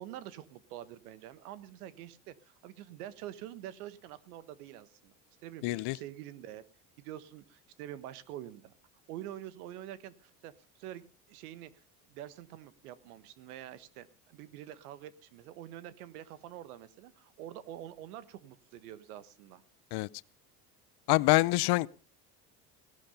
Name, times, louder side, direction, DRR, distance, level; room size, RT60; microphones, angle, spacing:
voice 1, 0.0-5.1 5.4-6.6 7.0-8.7 9.1-11.8 12.1-19.6, right 12 dB, 85° right, 16 dB, 1.5 m, -46 dB
voice 2, 5.6-6.0 19.9-20.1 21.1-21.9, left 21 dB, 65° left, 21 dB, 0.8 m, -25 dB
18.0 x 11.5 x 5.3 m, 0.36 s
supercardioid pair, 90°, 43 cm